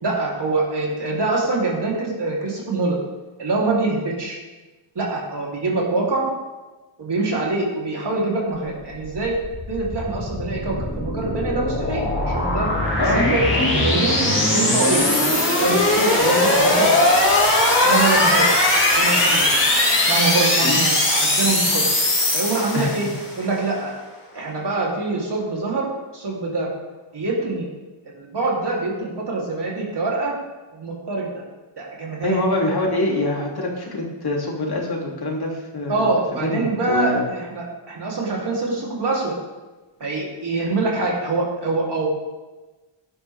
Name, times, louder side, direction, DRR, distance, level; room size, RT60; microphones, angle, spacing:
voice 1, 0.0-3.0 3.4-4.4 5.0-6.3 7.0-9.4 9.7-12.7 13.1-15.0 15.6-17.3 17.8-18.5 18.9-19.5 20.1-21.8 22.3-23.1 23.4-23.9 24.3-25.9 26.1-26.7 27.1-27.7 28.1-30.3 30.7-31.3 31.8-32.4 35.9-39.4 40.0-42.1, right 3 dB, 50° right, -4 dB, 3.8 m, -24 dB
sound 1, 8.7-23.3, left 1 dB, 25° left, 3.9 m, -19 dB
voice 2, 13.0-13.8 20.6-20.8 22.7-23.0 32.2-36.1 36.4-37.2, left 1 dB, 50° left, -2 dB, 3.4 m, -24 dB
17.5 x 11.5 x 3.7 m, 1.2 s
wide cardioid pair, 125°, 50 cm